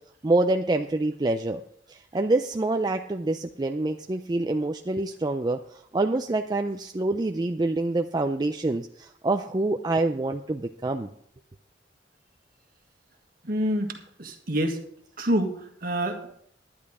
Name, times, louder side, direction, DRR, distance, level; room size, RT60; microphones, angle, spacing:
voice 1, 0.2-1.6 1.9-11.1, right 2 dB, 25° right, 5 dB, 0.4 m, -26 dB
voice 2, 13.4-14.8 15.2-16.3, equal, 50° right, 5 dB, 1.7 m, -27 dB
11.0 x 10.5 x 4.8 m, 0.67 s
head